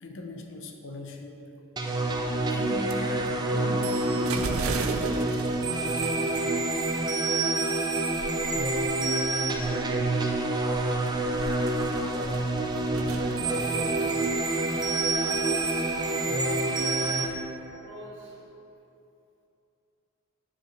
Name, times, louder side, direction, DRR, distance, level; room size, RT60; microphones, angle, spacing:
voice 1, 0.0-1.4 2.5-5.0, left 1 dB, 65° left, 4 dB, 0.6 m, -39 dB
sound 1, 1.8-17.2, right 2 dB, 20° right, 0.4 m, -27 dB
sound 2, 2.0-17.4, right 4 dB, 85° right, 0.4 m, -40 dB
voice 2, 12.0-12.4 13.0-18.5, right 1 dB, 60° right, -5 dB, 1.5 m, -45 dB
9.1 x 4.8 x 3.2 m, 2.7 s
head